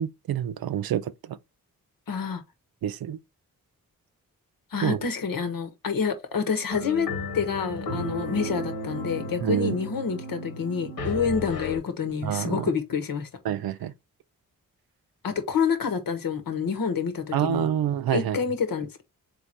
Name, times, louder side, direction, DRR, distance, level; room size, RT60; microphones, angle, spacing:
voice 1, 0.0-1.4 2.8-3.2 4.8-5.0 9.4-9.8 12.2-12.7 13.4-13.9 17.3-18.4, right 10 dB, 80° right, 0.5 m, -27 dB
voice 2, 2.1-2.4 4.7-13.3 15.2-17.7 18.1-19.0, left 6 dB, 70° left, 1.2 m, -28 dB
sound 1, 6.7-11.8, left 1 dB, 90° left, 1.7 m, -34 dB
3.7 x 3.0 x 4.2 m
cardioid pair, 45°, 36 cm